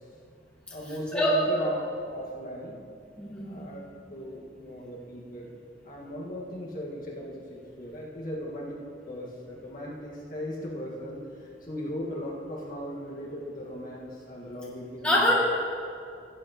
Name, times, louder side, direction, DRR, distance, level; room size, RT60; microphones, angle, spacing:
voice 1, 0.7-2.8 3.4-5.5 5.8-8.8 9.1-15.3, equal, 50° left, -5 dB, 1.8 m, -37 dB
voice 2, 3.2-3.6 15.0-15.4, left 1 dB, 5° left, -6 dB, 1.8 m, -24 dB
17.0 x 9.4 x 3.1 m, 2.4 s
head